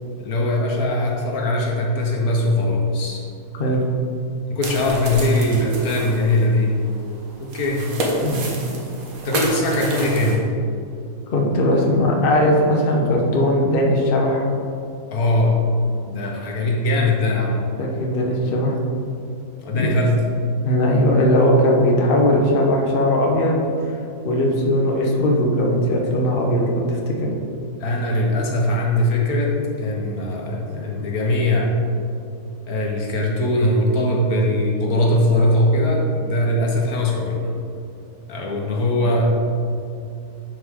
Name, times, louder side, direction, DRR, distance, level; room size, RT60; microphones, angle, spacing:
voice 1, 0.2-3.2 4.5-6.8 7.4-7.9 9.2-10.6 15.1-15.6 16.1-17.7 19.6-20.2 27.8-31.7 32.7-37.5 38.3-39.3, left 1 dB, 75° left, -1 dB, 1.6 m, -20 dB
sound 1, 4.6-10.4, right 2 dB, 70° right, 1.5 m, -29 dB
voice 2, 11.3-14.5 16.0-16.2 17.8-18.8 19.7-19.9 20.6-23.6 24.2-27.3, left 1 dB, 45° left, -1 dB, 1.0 m, -19 dB
9.9 x 4.7 x 3.7 m, 2.5 s
omnidirectional pair, 1.6 m